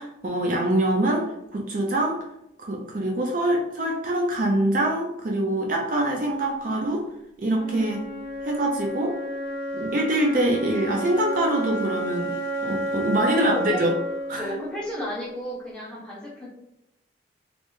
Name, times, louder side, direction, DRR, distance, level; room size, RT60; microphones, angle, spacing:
voice 1, 0.0-2.2 2.6-7.1 7.4-8.0 8.4-9.2 9.7-12.3 12.6-13.9 14.3-14.5, right 1 dB, 45° right, 0 dB, 0.4 m, -24 dB
Wind instrument woodwind instrument, 7.5-15.5, right 1 dB, 60° left, 0.7 m, -32 dB
voice 2, 13.3-13.9 14.4-16.5, left 1 dB, 5° left, -7 dB, 0.9 m, -33 dB
3.2 x 2.6 x 3.1 m, 0.86 s
head